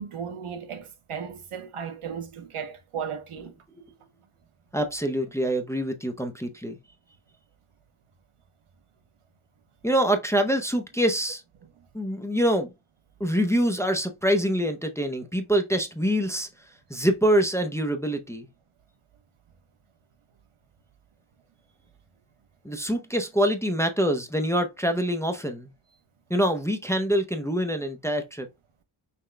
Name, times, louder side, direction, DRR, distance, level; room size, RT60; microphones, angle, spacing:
voice 1, 0.0-3.5, right 7 dB, 85° right, 1.0 m, -35 dB
voice 2, 4.7-6.8 9.8-11.4 11.9-12.7 13.2-16.5 16.9-18.5 22.6-25.7 26.3-28.5, equal, 5° left, 0.5 m, -25 dB
5.8 x 2.3 x 3.2 m
wide cardioid pair, 125°, 50 cm